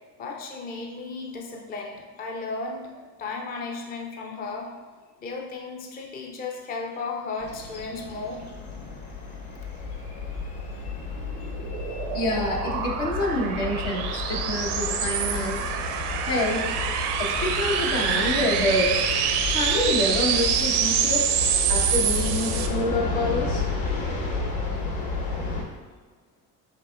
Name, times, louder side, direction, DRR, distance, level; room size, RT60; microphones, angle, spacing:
voice 1, 0.2-4.8 5.2-8.5, left 3 dB, 20° left, 2 dB, 0.5 m, -35 dB
sound 1, 7.4-25.6, left 3 dB, 50° left, 1.2 m, -32 dB
sound 2, 10.9-22.7, right 8 dB, 75° right, 0.6 m, -26 dB
voice 2, 12.1-15.6 16.2-16.8 17.2-18.9 19.5-21.2 21.7-23.6, left 1 dB, 70° left, -3 dB, 1.3 m, -27 dB
7.3 x 2.8 x 2.4 m, 1.4 s
hypercardioid pair, 60°, 48 cm